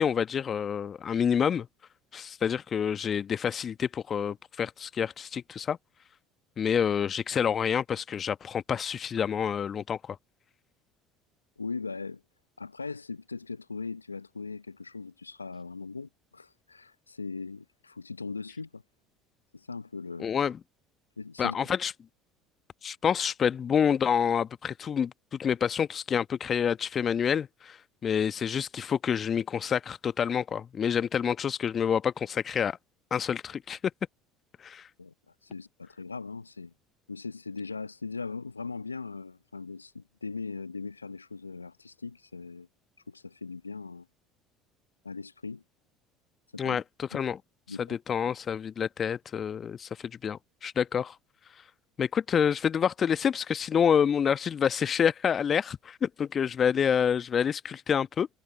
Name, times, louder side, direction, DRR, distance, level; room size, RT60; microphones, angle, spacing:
voice 1, 0.0-1.7 2.1-5.8 6.6-10.2 20.2-20.6 21.4-21.9 22.8-27.8 28.0-32.8 33.1-33.8 34.6-34.8 46.6-47.4 48.1-49.9 50.2-51.1 52.0-58.3, left 7 dB, 35° left, 1.2 m, -28 dB
voice 2, 11.6-12.2 12.6-18.8 19.5-20.3 21.2-21.6 35.0-36.7 37.1-42.7 43.1-44.1 45.0-45.6 46.5-46.8 47.7-48.0, left 4 dB, 90° left, 1.0 m, -39 dB
figure-of-eight pair, 65°, 0 cm